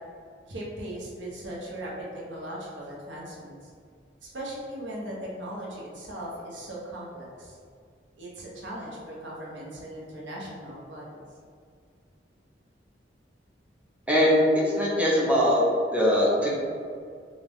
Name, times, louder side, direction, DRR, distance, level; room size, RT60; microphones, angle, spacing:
voice 1, 0.5-3.7 4.2-7.6 8.2-11.2, right 1 dB, 90° right, -4 dB, 0.9 m, -38 dB
voice 2, 14.1-15.6 15.9-16.5, equal, 10° right, -6 dB, 0.8 m, -21 dB
4.0 x 2.4 x 3.5 m, 2.2 s
head